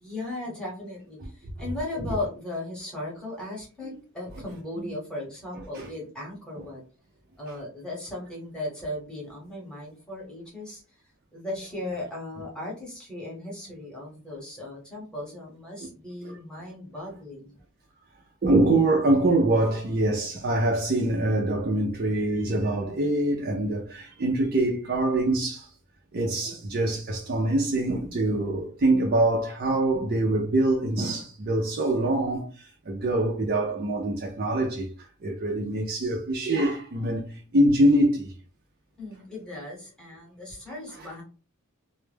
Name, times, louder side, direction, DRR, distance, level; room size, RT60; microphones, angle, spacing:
voice 1, 0.0-6.8 7.4-10.8 11.3-17.6 27.9-28.1 39.0-41.2, left 2 dB, 5° left, 0.9 m, -37 dB
voice 2, 18.4-25.7 26.1-32.5 32.9-34.9 35.2-37.3 37.5-38.3, right 1 dB, 45° right, 0.4 m, -24 dB
2.1 x 2.0 x 3.2 m
head